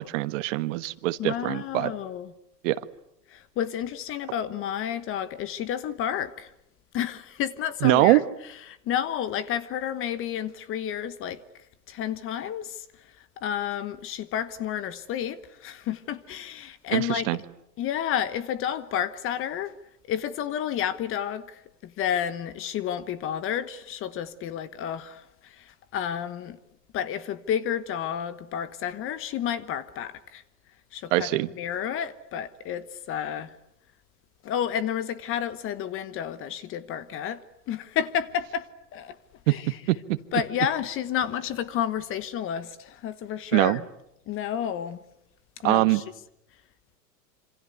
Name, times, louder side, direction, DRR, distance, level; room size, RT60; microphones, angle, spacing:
voice 1, 0.0-1.9 2.6-2.8 7.8-8.2 16.9-17.4 31.1-31.5 39.5-39.6 39.9-40.2 43.5-43.8 45.6-46.0, right 19 dB, 45° right, 1.5 m, -23 dB
voice 2, 1.2-2.3 3.3-6.5 6.9-8.2 8.7-11.4 11.9-12.8 13.4-17.3 17.8-19.7 20.1-26.6 26.9-30.4 30.9-31.3 31.6-33.5 34.4-39.2 39.5-39.8 40.3-43.8 44.3-45.0 45.6-46.0, left 9 dB, 25° left, 1.2 m, -31 dB
27.5 x 26.5 x 8.3 m
hypercardioid pair, 135°, 50 cm